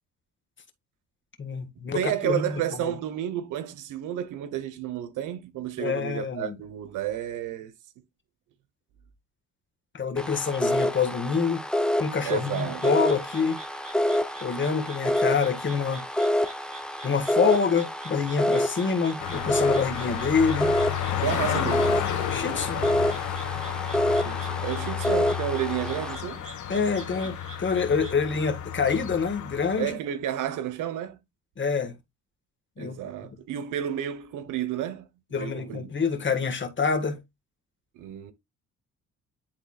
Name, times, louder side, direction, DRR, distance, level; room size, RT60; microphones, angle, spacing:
voice 1, 1.4-3.0 5.8-6.6 9.9-11.7 12.0-13.6 14.4-16.0 17.0-20.7 22.3-22.8 26.7-30.0 31.6-32.0 32.8-33.0 35.3-37.2, left 5 dB, 40° left, 1.7 m, -26 dB
voice 2, 1.9-7.7 12.2-12.8 21.2-22.0 24.1-26.4 29.8-31.2 32.8-35.9 37.9-38.3, right 11 dB, 90° right, 1.1 m, -31 dB
sound 1, 10.2-26.2, left 1 dB, 5° left, 0.8 m, -28 dB
sound 2, 12.3-28.1, right 2 dB, 25° right, 4.0 m, -47 dB
sound 3, 19.2-29.9, left 10 dB, 75° left, 1.5 m, -32 dB
11.0 x 3.7 x 2.4 m
cardioid pair, 90°, 30 cm